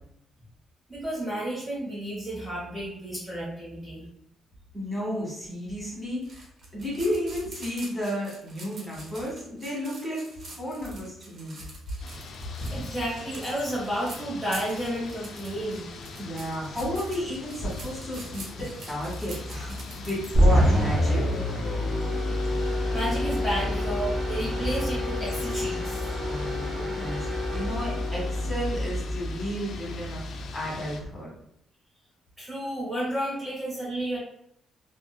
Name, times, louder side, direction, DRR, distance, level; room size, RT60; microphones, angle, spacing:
voice 1, 0.9-4.0 12.7-15.9 22.9-26.0 32.4-34.2, right 1 dB, 15° right, -6 dB, 1.1 m, -31 dB
voice 2, 4.7-6.5 6.7-10.2 10.6-11.6 16.2-21.4 26.3-30.2 30.5-31.3, equal, 10° left, -5 dB, 1.5 m, -33 dB
sound 1, 6.2-20.4, right 2 dB, 50° right, 0.9 m, -46 dB
sound 2, 12.0-31.0, left 2 dB, 65° left, 0.4 m, -39 dB
sound 3, 20.3-29.7, left 1 dB, 35° right, 1.0 m, -27 dB
2.7 x 2.6 x 2.3 m, 0.76 s
cardioid pair, 90°, 0 cm